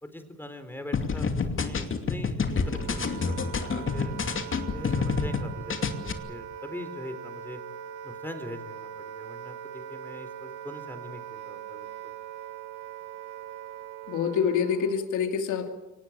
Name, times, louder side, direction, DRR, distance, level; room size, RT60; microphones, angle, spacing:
voice 1, 0.0-4.1 4.7-7.6 8.0-12.1, left 1 dB, 5° left, 9 dB, 4.0 m, -42 dB
sound 1, 0.9-5.4 5.7-6.1, left 5 dB, 40° left, 2.7 m, -28 dB
Wind instrument woodwind instrument, 2.5-15.1, right 9 dB, 75° right, 2.3 m, -41 dB
voice 2, 14.1-15.7, left 7 dB, 80° left, 5 dB, 2.7 m, -26 dB
24.0 x 19.0 x 8.9 m, 1.1 s
cardioid pair, 90°, 30 cm